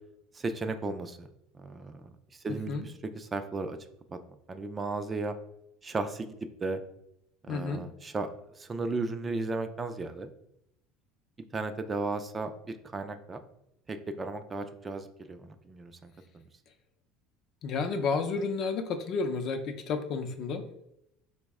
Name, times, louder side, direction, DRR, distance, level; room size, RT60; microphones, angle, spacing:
voice 1, 0.3-1.3 1.6-2.1 2.4-3.8 4.1-4.2 4.5-5.3 5.8-6.3 6.6-6.8 7.5-8.3 8.6-10.3 11.5-12.5 12.9-13.4 13.9-16.1, right 3 dB, 20° right, 8 dB, 0.3 m, -35 dB
voice 2, 7.5-7.8 17.6-20.6, left 4 dB, 50° left, 7 dB, 0.5 m, -31 dB
4.0 x 2.0 x 3.5 m, 0.80 s
supercardioid pair, 115°, 0 cm